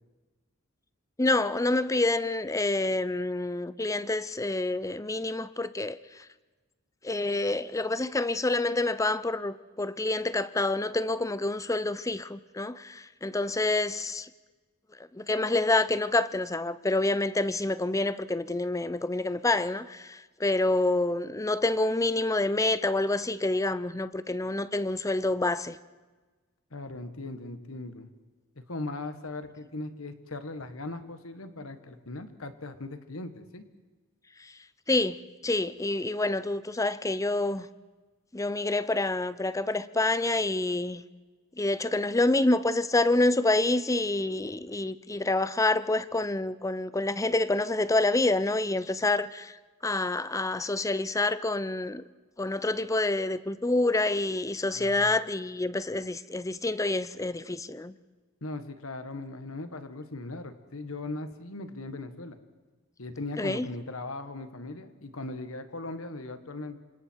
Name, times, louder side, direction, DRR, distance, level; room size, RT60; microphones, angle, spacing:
voice 1, 1.2-6.0 7.0-14.3 15.1-25.8 34.9-35.2 35.4-37.7 38.3-41.0 41.6-49.6 49.8-52.0 52.4-57.9 63.4-63.7, left 2 dB, 15° left, 0.6 m, -27 dB
voice 2, 26.7-28.1 28.6-33.6 54.7-55.1 58.4-62.4 63.0-66.8, left 2 dB, 85° left, 1.7 m, -39 dB
28.0 x 26.0 x 4.7 m
head